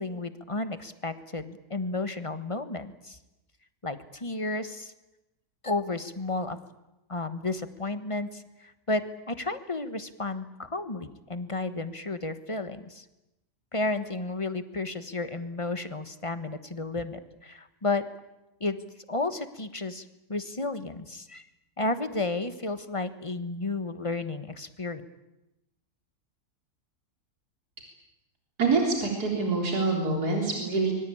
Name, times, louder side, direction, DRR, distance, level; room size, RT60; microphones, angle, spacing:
voice 1, 0.0-3.2 3.8-4.9 5.6-6.6 7.1-13.0 13.7-18.0 18.6-21.5 21.8-25.0, left 2 dB, 20° left, 11 dB, 1.2 m, -32 dB
voice 2, 28.6-31.0, right 3 dB, 75° right, 1 dB, 4.1 m, -26 dB
25.0 x 23.0 x 8.7 m, 0.94 s
omnidirectional pair, 1.7 m